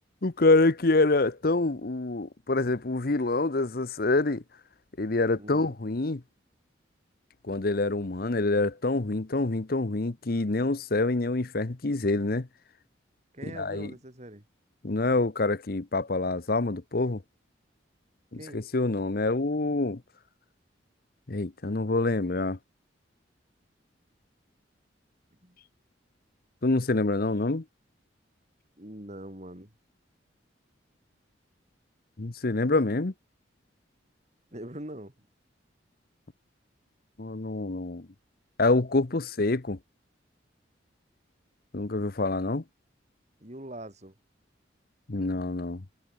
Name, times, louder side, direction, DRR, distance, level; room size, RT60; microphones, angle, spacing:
voice 1, 0.2-4.4 5.0-6.2 7.5-12.5 13.5-13.9 14.8-17.2 18.3-20.0 21.3-22.6 26.6-27.6 32.2-33.1 37.2-38.1 38.6-39.8 41.7-42.6 45.1-45.8, left 2 dB, 50° left, 0.9 m, -26 dB
voice 2, 5.4-5.7 13.3-14.4 18.4-18.6 25.4-25.6 28.8-29.7 34.5-35.1 43.4-44.1, right 1 dB, 35° right, 4.1 m, -42 dB
head